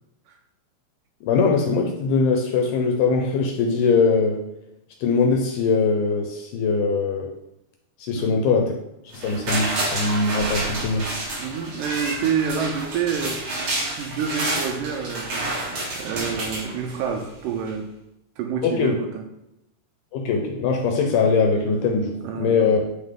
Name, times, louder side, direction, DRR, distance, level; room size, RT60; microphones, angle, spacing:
voice 1, 1.2-4.4 5.0-7.3 8.0-8.8 9.1-11.1 16.3-16.4 18.6-19.0 20.1-22.8, left 4 dB, 75° left, 3 dB, 2.0 m, -21 dB
voice 2, 8.2-8.5 11.4-17.9 18.4-19.3 22.2-22.8, right 7 dB, 85° right, 4 dB, 1.9 m, -28 dB
sound 1, 9.1-17.3 17.7-17.8, right 2 dB, 50° right, 2.9 m, -29 dB
9.2 x 3.6 x 3.6 m, 0.83 s
omnidirectional pair, 4.2 m